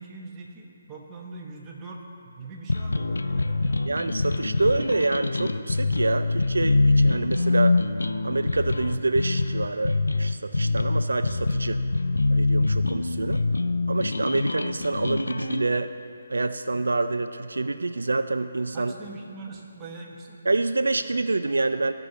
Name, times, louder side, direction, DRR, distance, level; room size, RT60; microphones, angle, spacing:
voice 1, 0.0-4.9 18.7-20.4, right 3 dB, 20° right, -1 dB, 1.1 m, -42 dB
sound 1, 2.7-15.6, left 3 dB, 85° left, 0.4 m, -24 dB
voice 2, 3.9-7.8 8.2-11.8 12.3-13.5 13.9-15.9 16.3-18.9 20.4-21.9, right 3 dB, 80° right, 10 dB, 0.3 m, -27 dB
16.5 x 5.6 x 4.0 m, 2.6 s
figure-of-eight pair, 150°, 0 cm